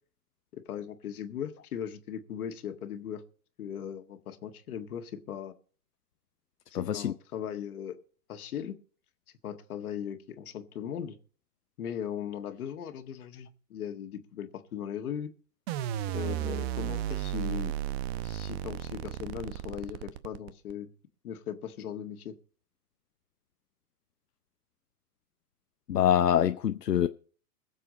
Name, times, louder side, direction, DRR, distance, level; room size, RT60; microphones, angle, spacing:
voice 1, 0.5-3.2 3.6-5.5 6.7-8.0 8.3-8.8 9.4-11.2 11.8-15.3 16.1-17.7 18.2-20.9 21.2-22.3, left 9 dB, 65° left, 1.8 m, -38 dB
voice 2, 6.7-7.1 25.9-27.1, left 10 dB, 85° left, 0.8 m, -25 dB
sound 1, 15.7-20.7, right 12 dB, 40° right, 0.8 m, -34 dB
22.0 x 7.5 x 4.2 m
hypercardioid pair, 115°, 47 cm